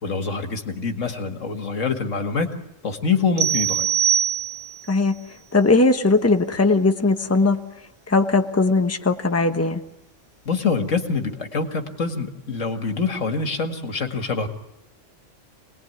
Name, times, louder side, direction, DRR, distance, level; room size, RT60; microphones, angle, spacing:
voice 1, 0.0-2.5 2.8-3.9 10.5-14.5, left 4 dB, 80° left, 5 dB, 2.3 m, -25 dB
sound 1, 3.4-4.9, right 9 dB, 85° right, 1.8 m, -22 dB
voice 2, 4.9-7.6 8.1-9.8, left 3 dB, 10° left, 6 dB, 1.2 m, -19 dB
27.0 x 20.0 x 9.5 m, 0.90 s
omnidirectional pair, 1.3 m